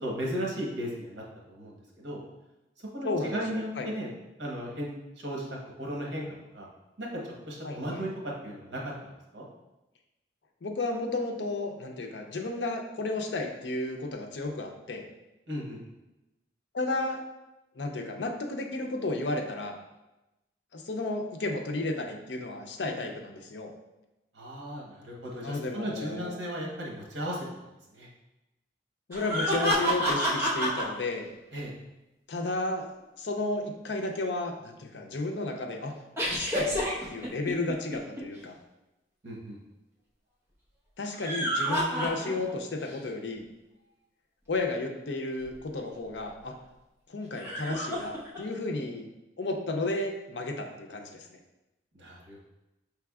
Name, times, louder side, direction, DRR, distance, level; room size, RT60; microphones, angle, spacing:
voice 1, 0.0-2.2 2.9-4.1 4.4-6.7 7.0-9.5 15.5-15.8 24.3-27.5 27.9-28.1 31.5-31.7 39.2-39.6 51.9-52.4, equal, 70° right, -2 dB, 1.1 m, -36 dB
voice 2, 3.0-3.9 7.6-8.0 10.6-15.0 16.7-17.2 17.8-19.8 20.7-23.7 25.4-26.4 29.1-31.3 32.3-32.9 33.2-35.9 36.2-36.8 37.1-38.6 41.0-43.4 44.5-46.5 47.1-49.1 49.4-51.4, left 2 dB, 70° left, 3 dB, 0.6 m, -33 dB
sound 1, 29.1-30.8 36.2-38.2 41.0-42.6 43.0-43.1 45.4-45.5 47.3-48.4, equal, 15° right, 1.0 m, -29 dB
5.8 x 3.4 x 2.3 m, 0.99 s
head